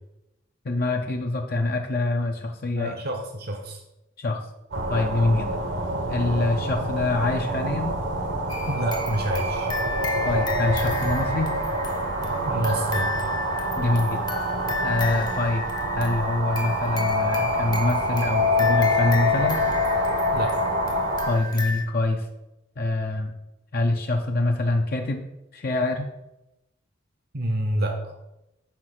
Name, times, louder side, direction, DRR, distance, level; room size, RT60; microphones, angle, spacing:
voice 1, 0.6-2.9 4.2-4.4 4.9-5.5 6.1-7.9 10.2-11.5 13.8-14.2 14.8-15.6 16.0-19.6 21.3-22.3 22.8-23.3 23.7-25.2 25.5-26.1, left 2 dB, 50° left, 2 dB, 0.6 m, -25 dB
voice 2, 2.7-3.8 8.7-9.7 12.4-13.1 20.3-20.6 27.3-28.1, right 1 dB, 55° right, 3 dB, 0.8 m, -28 dB
sound 1, 4.7-21.3, equal, 70° right, 1.1 m, -26 dB
sound 2, 8.5-21.8, left 3 dB, 20° left, 0.8 m, -34 dB
5.9 x 4.7 x 6.4 m, 0.93 s
head